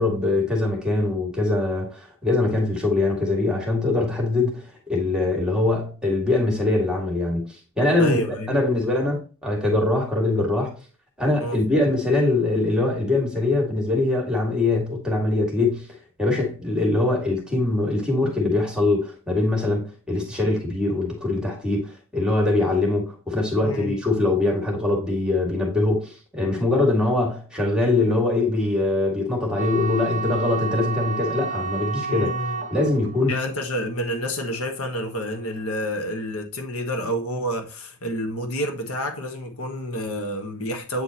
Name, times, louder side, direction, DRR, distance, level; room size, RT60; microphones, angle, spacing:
voice 1, 0.0-10.7 11.2-15.9 16.2-32.3 32.7-33.4, left 2 dB, 5° right, 2.0 m, -23 dB
voice 2, 8.0-8.6 11.4-11.6 23.6-23.9 32.1-32.6 33.3-41.0, equal, 85° left, 1.3 m, -29 dB
sound 1, 29.6-35.7, right 5 dB, 35° right, 0.9 m, -31 dB
8.8 x 4.2 x 2.9 m
head